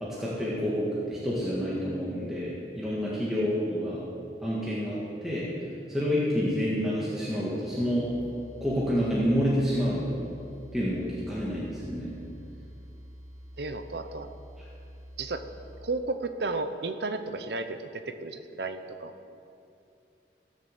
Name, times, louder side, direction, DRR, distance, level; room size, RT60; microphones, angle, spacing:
voice 1, 0.0-4.0 4.4-5.5 5.9-8.1 8.6-10.1 10.7-12.1, equal, ahead, -8 dB, 1.8 m, -28 dB
sound 1, 7.8-15.8, equal, 20° right, 3.0 m, -47 dB
voice 2, 13.6-14.4 15.2-15.4 15.8-19.1, right 3 dB, 70° right, 9 dB, 0.8 m, -33 dB
15.0 x 6.7 x 7.5 m, 2.6 s
head